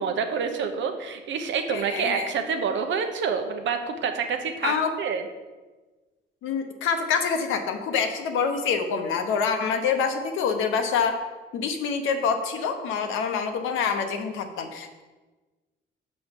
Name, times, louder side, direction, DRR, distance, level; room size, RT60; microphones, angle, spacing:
voice 1, 0.0-5.2, right 6 dB, 70° right, 6 dB, 0.8 m, -27 dB
voice 2, 1.7-2.3 4.6-4.9 6.4-11.2 11.5-15.0, left 6 dB, 90° left, 5 dB, 0.8 m, -26 dB
6.2 x 4.7 x 5.2 m, 1.3 s
cardioid pair, 90°, 20 cm